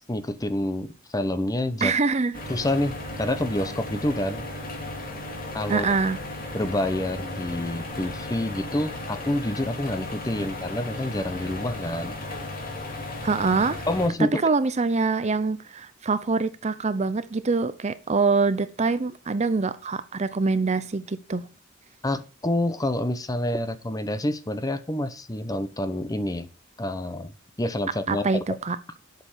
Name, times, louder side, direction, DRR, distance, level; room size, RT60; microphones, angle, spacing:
voice 1, 0.1-1.9 2.5-4.5 5.5-5.9 6.5-12.2 13.9-14.4 22.0-26.5 26.8-28.2, left 1 dB, 20° left, 0.8 m, -28 dB
voice 2, 1.8-2.4 5.7-6.2 13.2-13.8 14.3-21.5 28.1-28.8, right 4 dB, 35° right, 0.6 m, -24 dB
sound 1, 2.3-14.1, left 2 dB, 45° left, 2.7 m, -35 dB
8.1 x 6.6 x 7.2 m
head